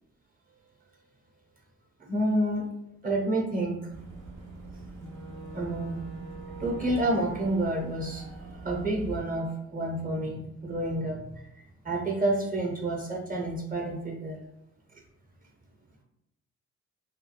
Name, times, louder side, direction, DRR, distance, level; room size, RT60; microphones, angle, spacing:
voice 1, 2.1-2.6 3.0-3.9 5.5-6.0 6.6-11.2 11.8-14.4, right 1 dB, 30° right, 0 dB, 0.7 m, -29 dB
Boat Water vehicle / Engine, 3.9-9.2, right 2 dB, 85° right, 0.7 m, -42 dB
2.2 x 2.2 x 3.1 m, 0.81 s
cardioid pair, 90°, 30 cm